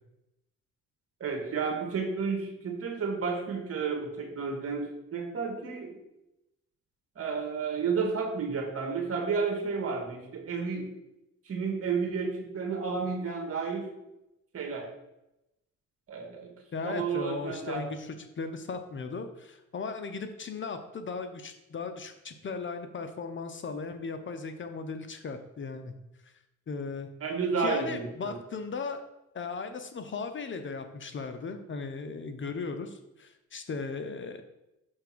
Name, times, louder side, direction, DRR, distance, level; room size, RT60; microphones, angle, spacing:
voice 1, 1.2-6.0 7.1-10.9 11.4-13.9 14.5-14.9 16.1-16.5 16.8-17.9 27.2-28.3, right 5 dB, 50° right, 3 dB, 1.8 m, -31 dB
voice 2, 16.7-25.9 26.2-26.3 26.7-27.1 27.6-29.0 29.3-34.4, left 4 dB, 40° left, 7 dB, 0.7 m, -37 dB
6.5 x 3.4 x 6.0 m, 0.90 s
cardioid pair, 90°, 30 cm